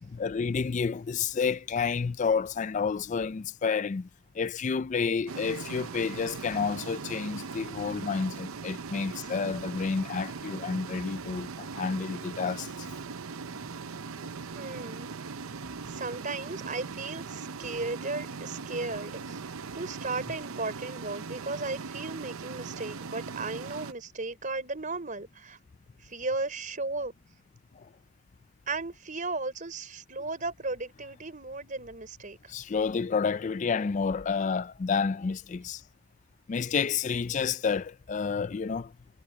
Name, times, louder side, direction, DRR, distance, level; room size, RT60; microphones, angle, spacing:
voice 1, 0.0-4.1 4.4-12.9 27.8-27.9 32.5-35.8 36.5-38.9, left 5 dB, 35° left, 0.3 m, -30 dB
sound 1, 5.3-23.9, right 5 dB, 80° right, 0.7 m, -40 dB
voice 2, 14.5-15.1 15.9-19.4 19.7-25.6 26.0-27.1 28.7-32.5, right 3 dB, 40° right, 4.5 m, -35 dB
head